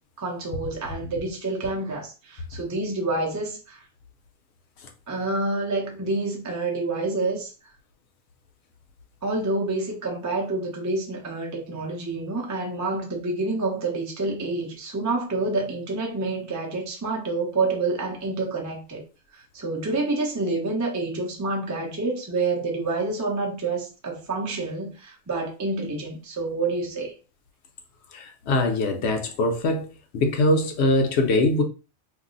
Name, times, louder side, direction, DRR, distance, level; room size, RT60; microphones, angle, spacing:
voice 1, 0.2-3.9 5.1-7.5 9.2-19.0 19.3-27.2, right 3 dB, 30° right, 0.3 m, -28 dB
voice 2, 28.1-29.9 30.1-31.6, left 2 dB, 65° left, 0.8 m, -22 dB
2.6 x 2.0 x 3.8 m
omnidirectional pair, 1.4 m